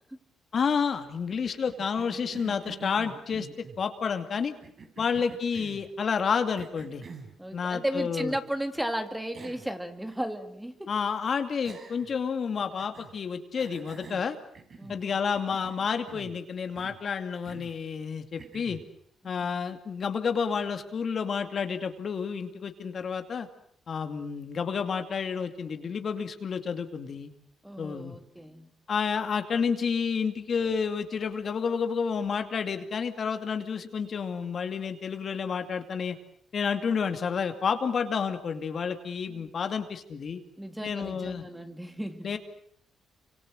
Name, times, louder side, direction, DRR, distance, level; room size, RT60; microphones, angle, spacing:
voice 1, 0.5-3.5 3.8-4.5 5.0-7.0 7.5-8.3 10.9-14.4 14.9-18.8 19.2-23.5 23.9-27.3 27.8-28.2 28.9-36.2 36.5-40.4 40.8-41.4 42.2-42.4, left 6 dB, 50° left, 7 dB, 2.5 m, -30 dB
Cough, 1.7-3.8 4.6-5.9 6.6-7.4 8.7-8.8 9.3-9.7 10.1-10.2 11.6-12.2 12.8-13.2 13.6-15.0 15.3-16.4 16.7-17.0 17.4-17.8 18.4-18.9, right 4 dB, 45° right, 4.5 m, -47 dB
voice 2, 7.4-10.9 14.8-15.0 19.4-19.5 27.6-28.7 39.3-39.5 40.6-42.4, right 1 dB, 5° right, 7 dB, 2.3 m, -35 dB
29.5 x 26.0 x 6.4 m, 0.64 s
cardioid pair, 90°, 0 cm